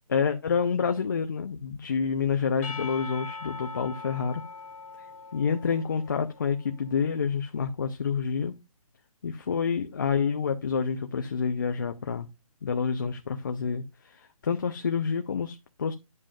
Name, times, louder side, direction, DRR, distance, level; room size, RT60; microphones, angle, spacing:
voice 1, 0.1-4.4 5.3-8.5 9.2-12.3 12.6-13.8 14.4-15.9, left 6 dB, 35° left, 5 dB, 0.7 m, -28 dB
Percussion / Church bell, 2.6-6.6, left 4 dB, 5° left, 1.0 m, -41 dB
11.0 x 7.6 x 2.4 m, 0.23 s
hypercardioid pair, 170°, 19 cm